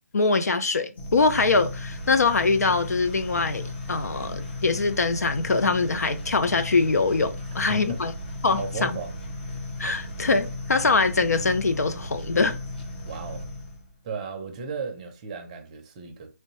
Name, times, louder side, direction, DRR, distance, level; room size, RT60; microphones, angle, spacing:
voice 1, 0.1-8.1 8.4-9.0 9.8-12.6, left 3 dB, 85° left, 0.5 m, -23 dB
sound 1, 1.0-13.9, left 1 dB, 40° left, 0.8 m, -36 dB
voice 2, 7.7-8.0 8.5-9.1 13.0-13.5 14.0-16.3, right 4 dB, 25° right, 0.6 m, -35 dB
3.1 x 2.7 x 3.0 m
hypercardioid pair, 160°, 9 cm